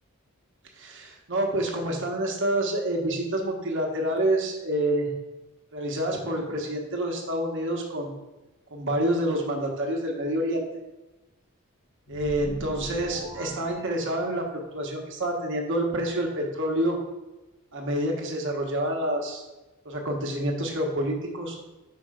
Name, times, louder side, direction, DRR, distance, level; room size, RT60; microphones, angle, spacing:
voice 1, 0.8-5.1 5.7-8.1 8.7-10.6 12.1-17.0 17.7-19.4 19.8-21.6, right 1 dB, 55° right, 1 dB, 1.2 m, -28 dB
sound 1, 12.1-14.6, equal, 90° left, 1.8 m, -39 dB
5.2 x 4.3 x 5.0 m, 1.1 s
head